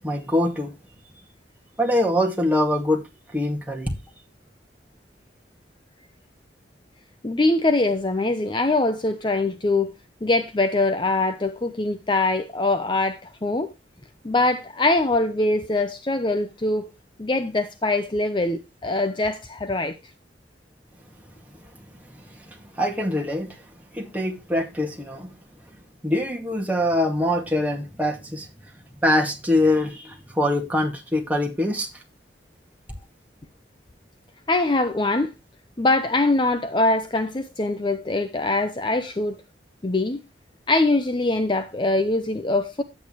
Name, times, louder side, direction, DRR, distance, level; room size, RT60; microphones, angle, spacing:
voice 1, 0.0-0.7 1.8-3.0 3.3-3.9 22.8-23.5 23.9-25.3 26.0-28.5 29.0-31.9, left 1 dB, 10° right, 2.1 m, -23 dB
voice 2, 7.2-9.9 10.2-13.7 14.2-16.9 17.2-19.9 34.5-35.3 35.8-39.4 39.8-40.2 40.7-42.8, left 2 dB, 25° left, 0.7 m, -23 dB
9.9 x 8.7 x 3.1 m
head